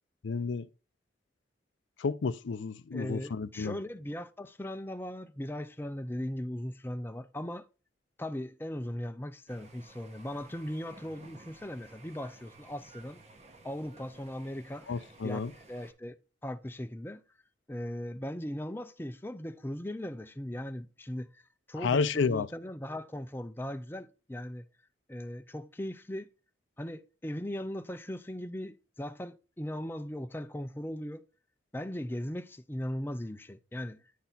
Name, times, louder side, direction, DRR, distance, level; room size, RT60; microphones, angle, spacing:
voice 1, 0.2-0.7 2.0-3.8 14.9-15.5 21.8-22.5, left 5 dB, 80° left, 0.5 m, -31 dB
voice 2, 2.9-7.7 8.2-13.2 13.6-14.9 15.2-15.4 15.7-16.2 16.4-17.2 17.7-21.4 21.7-24.6 25.1-26.3 26.8-31.2 31.7-34.0, left 1 dB, 10° left, 0.5 m, -38 dB
sound 1, 9.5-15.9, right 2 dB, 35° right, 1.2 m, -55 dB
10.0 x 4.0 x 4.1 m
head